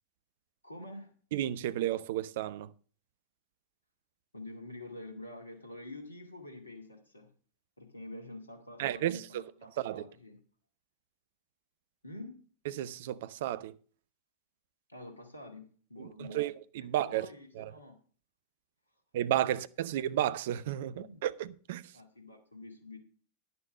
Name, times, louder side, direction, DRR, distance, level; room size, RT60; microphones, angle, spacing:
voice 1, 0.6-1.1 4.3-7.3 7.8-10.4 12.0-12.4 14.9-16.5 16.8-18.0 20.8-21.2 21.9-23.0, left 2 dB, 80° left, 2.2 m, -47 dB
voice 2, 1.3-2.7 8.8-9.4 9.8-10.0 12.7-13.7 16.2-17.3 17.6-17.7 19.1-21.3 21.7-21.9, right 12 dB, 55° right, 0.6 m, -32 dB
11.0 x 6.9 x 6.2 m
figure-of-eight pair, 90°, 0 cm